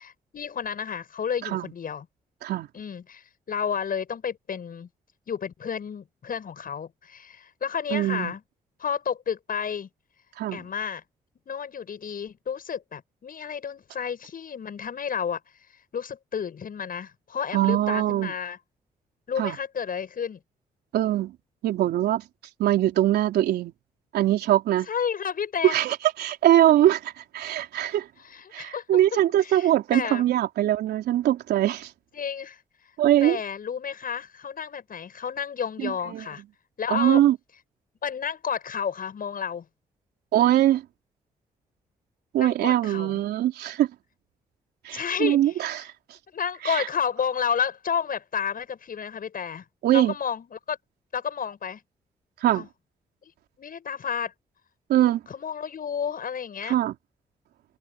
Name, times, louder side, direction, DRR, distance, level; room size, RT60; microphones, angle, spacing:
voice 1, 0.0-2.1 2.7-4.9 5.3-8.4 8.8-9.9 10.5-11.0 11.5-15.4 15.9-18.6 19.3-20.4 24.9-25.8 28.2-29.0 29.4-30.2 32.1-32.6 33.2-36.4 36.8-37.2 38.0-39.7 42.4-43.2 44.9-45.7 46.3-49.6 49.9-50.8 51.1-51.8 52.5-52.7 53.2-53.3 53.6-54.3 55.3-56.8, left 7 dB, 60° left, 7.8 m, -31 dB
voice 2, 7.9-8.3 10.4-10.6 17.5-18.3 19.4-19.6 20.9-21.3 21.6-22.2 22.6-23.7 24.1-24.9 25.6-28.1 28.5-31.9 33.0-33.4 35.8-36.2 36.9-37.4 40.3-40.8 42.3-43.9 44.8-45.9 46.6-46.9 49.8-50.1 52.4-52.7 54.9-55.2 56.7-56.9, right 13 dB, 80° right, 3.9 m, -22 dB
hypercardioid pair, 45°, 17 cm